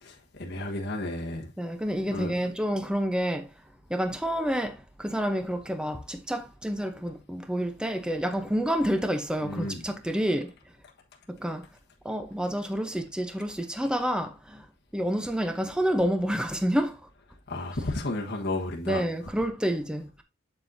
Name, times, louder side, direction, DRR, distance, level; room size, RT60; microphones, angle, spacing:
voice 1, 0.0-1.5 2.1-2.5 9.4-9.8 17.5-19.0, left 2 dB, 55° left, 1.4 m, -33 dB
voice 2, 1.6-3.5 3.9-10.5 11.3-11.7 12.0-14.7 14.9-17.0 18.9-20.2, equal, 5° right, 0.7 m, -29 dB
7.5 x 7.5 x 2.7 m
head